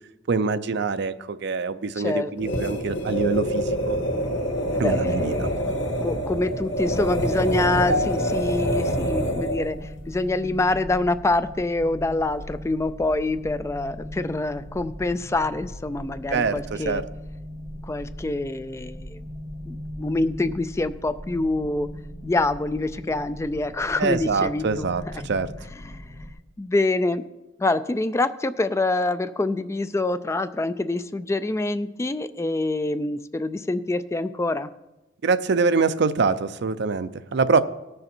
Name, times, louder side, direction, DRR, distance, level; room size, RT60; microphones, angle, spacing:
voice 1, 0.3-4.0 4.8-5.5 16.3-17.0 24.0-25.5 35.2-37.6, right 4 dB, 60° right, 13 dB, 0.5 m, -24 dB
voice 2, 1.9-2.3 4.7-17.0 17.8-19.2 19.7-21.9 22.2-25.3 25.8-26.2 26.6-27.3 27.6-34.7, left 2 dB, 15° left, 12 dB, 0.3 m, -26 dB
sound 1, 2.4-9.7, equal, 70° left, 1.8 m, -26 dB
sound 2, 6.7-26.3, equal, 30° left, 2.1 m, -39 dB
sound 3, 7.9-12.3 12.5-12.9 13.6-13.7, left 1 dB, 90° right, 1.4 m, -36 dB
18.5 x 6.5 x 4.4 m, 0.99 s
head